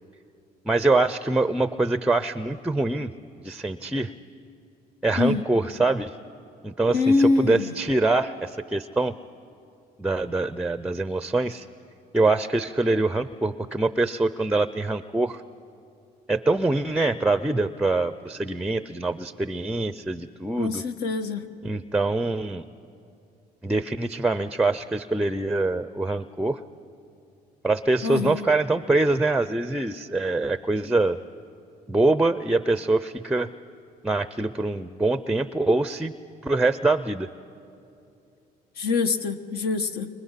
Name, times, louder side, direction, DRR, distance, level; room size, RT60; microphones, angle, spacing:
voice 1, 0.7-3.1 3.4-4.1 5.0-6.1 6.6-9.1 10.0-11.7 12.1-15.4 16.3-20.8 21.6-22.6 23.6-26.6 27.6-31.2 31.9-33.5 34.0-36.1 36.4-37.3, right 2 dB, 5° right, 12 dB, 0.5 m, -24 dB
voice 2, 5.1-5.4 6.9-7.7 20.6-21.5 28.0-28.4 38.8-40.1, left 3 dB, 70° left, 8 dB, 1.4 m, -24 dB
30.0 x 24.5 x 5.7 m, 2.7 s
cardioid pair, 110°, 17 cm